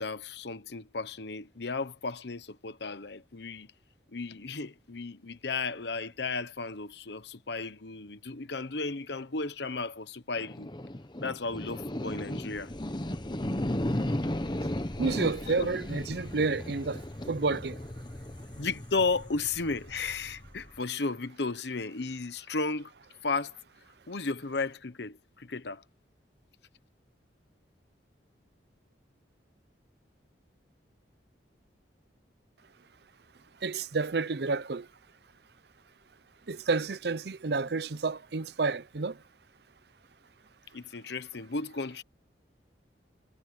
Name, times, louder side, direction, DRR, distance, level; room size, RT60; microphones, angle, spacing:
voice 1, 0.0-3.7 4.1-10.7 11.2-12.7 15.5-15.7 18.6-22.9 23.2-23.6 24.1-25.8 40.7-42.0, left 4 dB, 65° left, 1.0 m, -34 dB
sound 1, 10.4-20.8, left 1 dB, 25° left, 1.1 m, -35 dB
voice 2, 15.0-17.9 33.6-34.9 36.5-39.2, right 4 dB, 60° right, 0.6 m, -30 dB
head